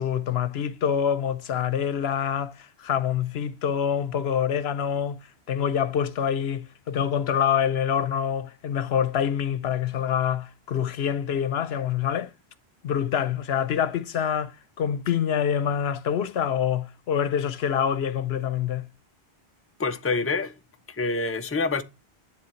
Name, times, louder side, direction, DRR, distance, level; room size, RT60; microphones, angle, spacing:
voice 1, 0.0-5.2 5.5-12.3 12.8-18.9, left 8 dB, 80° left, 1.0 m, -26 dB
voice 2, 19.8-20.5 20.9-21.8, left 3 dB, 15° left, 0.6 m, -26 dB
10.5 x 3.7 x 6.9 m
omnidirectional pair, 1.1 m